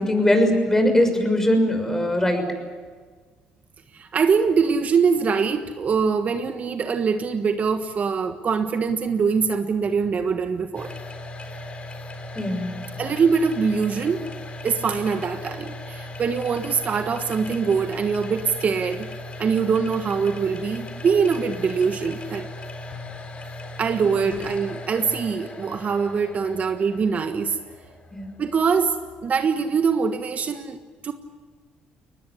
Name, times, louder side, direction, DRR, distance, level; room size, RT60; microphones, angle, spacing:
voice 1, 0.0-2.5 12.3-12.7 24.2-24.4 28.1-28.3, left 1 dB, 15° left, 6 dB, 6.3 m, -21 dB
voice 2, 3.9-10.9 13.0-14.3 14.6-19.1 19.4-22.5 23.8-27.6 28.4-28.9 29.2-30.8 31.0-31.1, right 5 dB, 45° right, 8 dB, 1.4 m, -23 dB
sound 1, 10.7-29.5, left 2 dB, 35° left, 3.9 m, -38 dB
22.0 x 20.0 x 9.9 m, 1.5 s
supercardioid pair, 75°, 3 cm